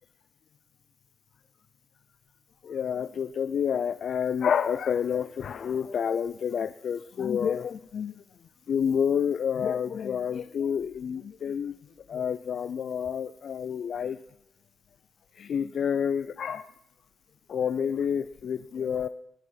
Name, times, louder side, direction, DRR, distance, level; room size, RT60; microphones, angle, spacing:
voice 1, 2.6-8.2 8.7-11.7 12.1-14.2 15.4-16.7 17.5-19.1, left 7 dB, 60° left, 13 dB, 0.4 m, -29 dB
19.5 x 7.6 x 5.6 m, 0.80 s
wide cardioid pair, 135°, 0 cm